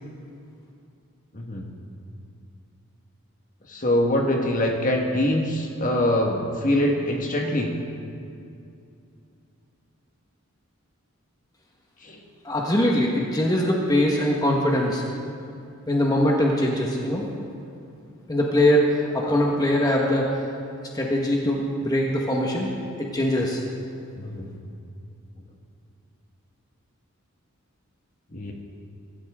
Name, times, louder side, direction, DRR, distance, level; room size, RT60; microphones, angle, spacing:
voice 1, 1.3-1.7 3.7-7.7 12.0-12.2 19.2-19.3 24.2-24.5 28.3-28.5, left 1 dB, 40° left, 1 dB, 1.6 m, -24 dB
voice 2, 12.4-15.0 15.9-17.3 18.3-18.8 19.1-20.3 20.9-22.7 23.0-23.6, left 1 dB, 15° left, -2 dB, 1.5 m, -22 dB
24.5 x 14.0 x 3.7 m, 2.5 s
head